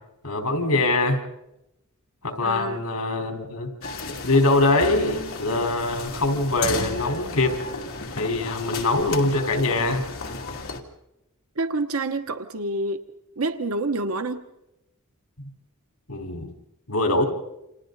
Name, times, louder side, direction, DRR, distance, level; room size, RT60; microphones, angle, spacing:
voice 1, 0.2-1.2 2.2-3.7 4.1-7.6 8.2-10.0 15.4-15.5 16.1-16.5 16.9-17.2, left 2 dB, 85° left, 3 dB, 4.2 m, -23 dB
voice 2, 2.4-2.8 11.6-13.0 13.4-14.4, right 2 dB, 70° right, 8 dB, 1.1 m, -27 dB
sound 1, 3.8-10.8, left 3 dB, 60° left, 2.5 m, -34 dB
29.5 x 27.5 x 4.0 m, 0.87 s
head